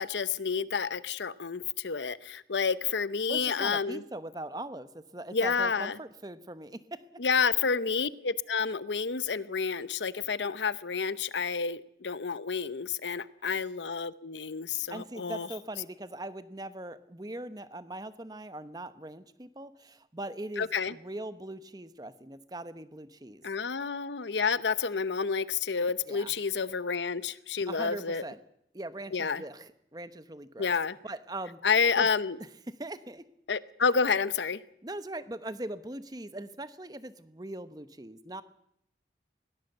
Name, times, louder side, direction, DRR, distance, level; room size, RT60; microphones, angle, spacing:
voice 1, 0.0-4.0 5.3-6.0 7.2-15.5 20.6-20.9 23.4-28.2 29.1-29.4 30.6-31.0 31.6-32.4 33.5-34.6, left 5 dB, 85° left, 16 dB, 0.8 m, -29 dB
voice 2, 3.3-7.0 14.9-23.4 26.1-26.3 27.7-28.4 28.7-30.7 31.0-31.6 32.0-32.1 32.7-33.2 34.8-38.4, right 1 dB, 20° right, 13 dB, 1.0 m, -41 dB
21.5 x 17.5 x 8.0 m, 0.74 s
head